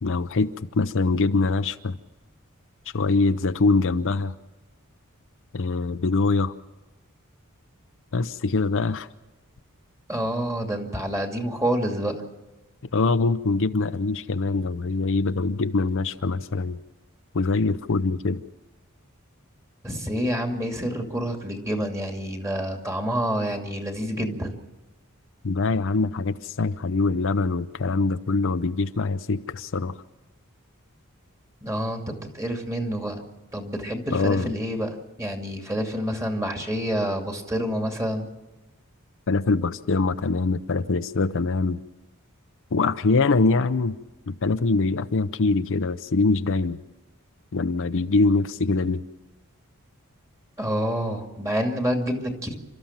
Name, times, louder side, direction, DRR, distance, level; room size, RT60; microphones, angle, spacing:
voice 1, 0.0-2.0 2.9-4.3 5.5-6.5 8.1-9.1 12.9-16.8 17.3-18.4 25.4-29.9 34.1-34.5 39.3-41.8 42.7-44.0 44.3-46.8 47.5-49.0, left 3 dB, 60° left, 10 dB, 0.7 m, -23 dB
voice 2, 10.1-12.1 19.8-24.5 31.6-32.0 32.3-33.2 33.5-38.3 50.6-52.5, equal, 15° right, 3 dB, 2.5 m, -28 dB
29.0 x 13.5 x 7.4 m, 1.1 s
head